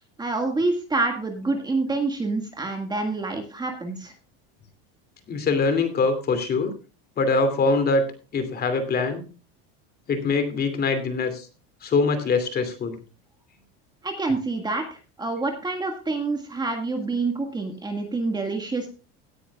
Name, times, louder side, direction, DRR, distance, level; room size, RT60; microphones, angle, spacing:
voice 1, 0.2-4.1 14.0-18.9, right 3 dB, 15° right, 4 dB, 1.8 m, -27 dB
voice 2, 5.3-6.7 7.2-8.0 8.3-9.3 10.1-11.5 11.8-13.0, left 3 dB, 30° left, 9 dB, 2.6 m, -23 dB
17.5 x 9.8 x 2.3 m, 0.35 s
cardioid pair, 145°, 32 cm